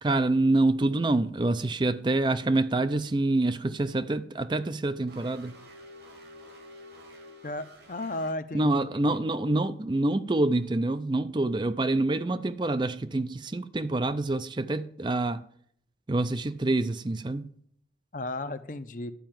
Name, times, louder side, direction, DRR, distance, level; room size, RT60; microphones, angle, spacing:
voice 1, 0.0-5.6 8.5-15.4 16.1-17.5, right 2 dB, 25° right, 0.4 m, -26 dB
sound 1, 5.1-8.3, left 1 dB, 75° right, 2.5 m, -49 dB
voice 2, 7.4-9.2 18.1-19.1, left 2 dB, 45° left, 0.7 m, -35 dB
11.5 x 5.6 x 9.0 m
head